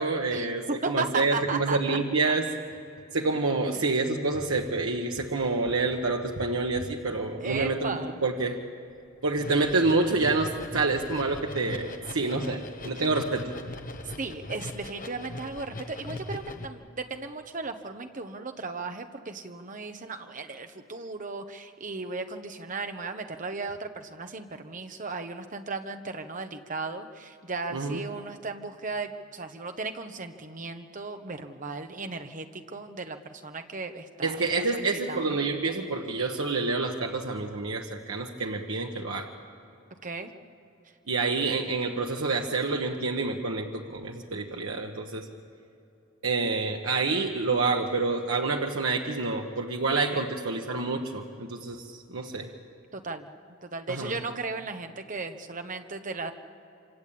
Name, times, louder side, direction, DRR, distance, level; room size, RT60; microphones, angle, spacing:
voice 1, 0.0-2.5 3.1-8.6 9.2-13.5 27.7-28.0 34.2-39.3 41.1-45.3 46.2-52.5 53.9-54.1, right 3 dB, 85° right, 1 dB, 1.3 m, -28 dB
voice 2, 0.8-2.0 3.7-3.8 7.4-8.2 14.2-35.4 40.0-40.3 50.1-50.2 52.9-53.3 53.6-56.3, right 3 dB, 40° right, 6 dB, 1.2 m, -36 dB
sound 1, 8.9-9.0 9.3-16.7, left 2 dB, 40° left, 1.3 m, -40 dB
26.0 x 25.5 x 8.7 m, 2.7 s
head